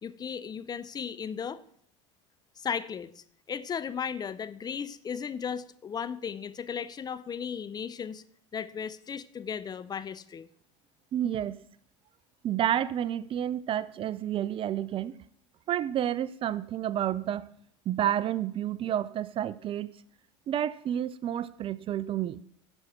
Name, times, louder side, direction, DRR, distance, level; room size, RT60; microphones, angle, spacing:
voice 1, 0.0-1.6 2.6-8.2 8.5-10.5, left 7 dB, 25° left, 0.6 m, -36 dB
voice 2, 11.1-11.6 12.4-15.2 15.7-17.5 17.9-20.0 20.5-22.4, right 11 dB, 35° right, 0.4 m, -30 dB
10.5 x 6.3 x 5.7 m
hypercardioid pair, 80°, 15 cm